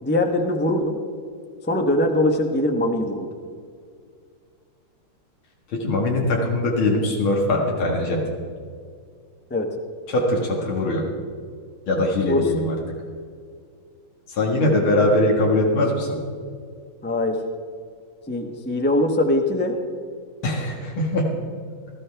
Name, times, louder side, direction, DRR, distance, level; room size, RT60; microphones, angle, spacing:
voice 1, 0.0-1.0 1.6-3.3 9.5-9.7 12.2-12.7 17.0-17.4 18.3-19.8, left 1 dB, 15° left, 3 dB, 0.3 m, -22 dB
voice 2, 5.7-8.2 10.1-11.0 11.9-12.7 14.3-16.1 20.4-21.3, left 1 dB, 85° left, -1 dB, 2.5 m, -21 dB
18.0 x 13.5 x 3.4 m, 2.2 s
omnidirectional pair, 2.2 m